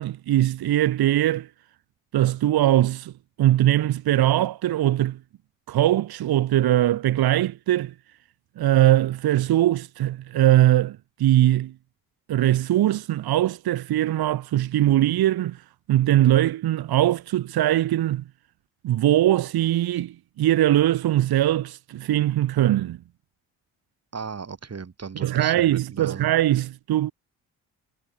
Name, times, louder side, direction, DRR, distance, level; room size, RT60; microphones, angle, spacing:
voice 1, 0.0-1.5 2.1-3.1 3.4-5.2 5.7-7.9 8.6-11.7 12.3-15.6 15.9-18.2 18.8-23.0 25.2-27.1, right 13 dB, 65° right, 1.4 m, -21 dB
voice 2, 24.1-26.3, right 5 dB, 40° right, 4.3 m, -36 dB
hypercardioid pair, 55°, 40 cm